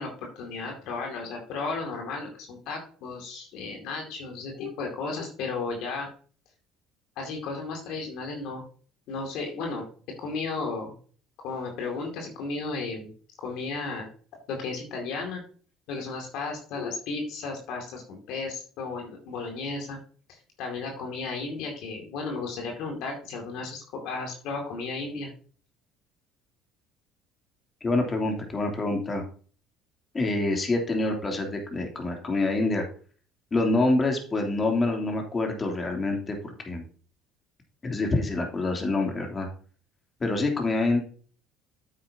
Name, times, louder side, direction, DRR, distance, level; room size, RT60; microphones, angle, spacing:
voice 1, 0.0-6.1 7.2-8.6 9.1-9.8 10.2-10.9 11.4-13.1 13.4-14.1 14.5-15.4 15.9-20.0 20.6-25.3, left 4 dB, 70° left, 2 dB, 2.3 m, -34 dB
voice 2, 27.8-29.2 30.1-32.8 33.5-36.8 37.8-39.5 40.2-41.0, left 2 dB, 30° left, 2 dB, 2.9 m, -26 dB
9.2 x 8.6 x 2.8 m, 0.42 s
hypercardioid pair, 70°, 0 cm